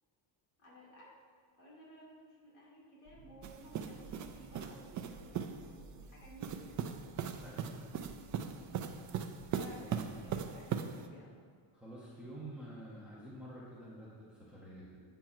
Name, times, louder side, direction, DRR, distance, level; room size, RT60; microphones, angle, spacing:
voice 1, 0.6-1.1 1.6-7.1 8.8-9.2 9.5-11.4, equal, 40° left, -5 dB, 2.4 m, -57 dB
sound 1, 3.1-10.5, right 3 dB, 90° right, 1.3 m, -56 dB
sound 2, 3.4-5.6 6.4-11.1, right 8 dB, 40° right, 0.4 m, -39 dB
voice 2, 7.4-8.0 9.8-10.0 11.7-15.0, right 1 dB, ahead, -8 dB, 1.1 m, -49 dB
9.0 x 4.6 x 5.7 m, 2.1 s
cardioid pair, 175°, 49 cm